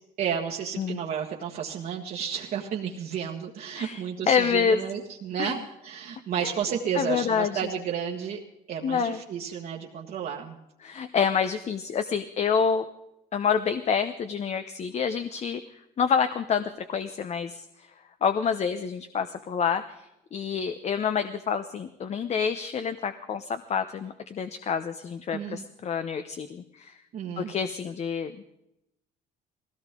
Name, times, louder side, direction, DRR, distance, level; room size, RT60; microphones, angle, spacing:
voice 1, 0.2-8.4 8.7-10.6 25.3-25.6 27.1-27.5, right 8 dB, 60° right, -3 dB, 1.6 m, -32 dB
voice 2, 3.8-4.8 5.4-5.6 6.4-6.5 6.9-7.6 8.8-9.2 10.8-12.9 13.3-15.6 16.0-17.7 18.2-19.8 20.3-26.9 27.4-28.4, left 6 dB, 40° left, 10 dB, 0.8 m, -27 dB
19.0 x 17.0 x 3.7 m, 0.86 s
cardioid pair, 110°, 17 cm